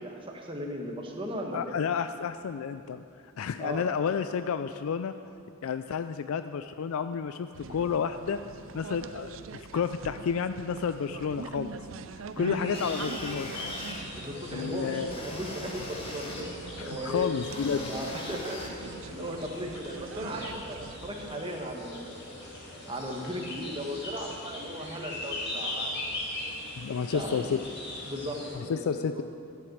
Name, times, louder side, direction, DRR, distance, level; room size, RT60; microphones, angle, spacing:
voice 1, 0.0-1.8 3.6-3.9 12.4-12.7 14.1-16.5 16.7-17.3 17.9-22.3 22.9-26.0 27.1-27.5 28.0-29.2, equal, 25° right, 1 dB, 1.3 m, -37 dB
voice 2, 1.5-3.0 3.4-5.1 5.6-8.4 8.7-11.8 12.4-13.7 14.0-14.1 14.5-15.1 16.8-17.9 26.8-27.6 28.7-29.2, left 6 dB, 75° left, 10 dB, 0.4 m, -31 dB
sound 1, 7.5-21.4, right 5 dB, 65° right, 0.5 m, -43 dB
sound 2, 12.6-28.6, left 1 dB, 50° left, 2.6 m, -40 dB
sound 3, 12.7-14.0 15.1-16.4 17.5-18.7, left 1 dB, 25° left, 1.3 m, -41 dB
12.0 x 7.9 x 7.9 m, 2.5 s
head